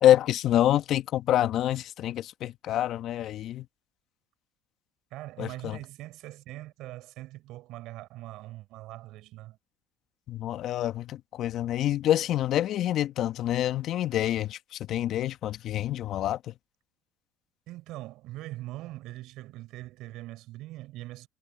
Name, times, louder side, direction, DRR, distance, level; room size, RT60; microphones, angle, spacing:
voice 1, 0.0-3.6 5.4-5.8 10.3-16.5, left 12 dB, 55° left, 1.4 m, -26 dB
voice 2, 5.1-9.6 17.7-21.3, right 17 dB, 65° right, 6.1 m, -42 dB
hypercardioid pair, 80°, 0 cm